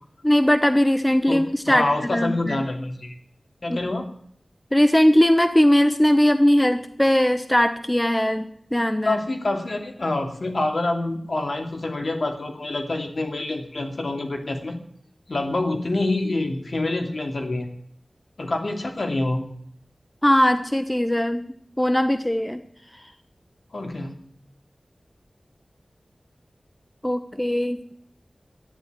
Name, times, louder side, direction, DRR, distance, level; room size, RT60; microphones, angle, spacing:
voice 1, 0.2-2.6 3.7-3.8 4.7-9.2 20.2-22.6 27.0-27.8, equal, 15° left, 9 dB, 1.0 m, -20 dB
voice 2, 1.3-3.2 3.6-4.1 9.0-14.8 15.3-17.7 18.4-19.4 23.7-24.2, left 2 dB, 65° left, 4 dB, 2.6 m, -26 dB
13.0 x 10.5 x 9.3 m, 0.64 s
wide cardioid pair, 65°, 0 cm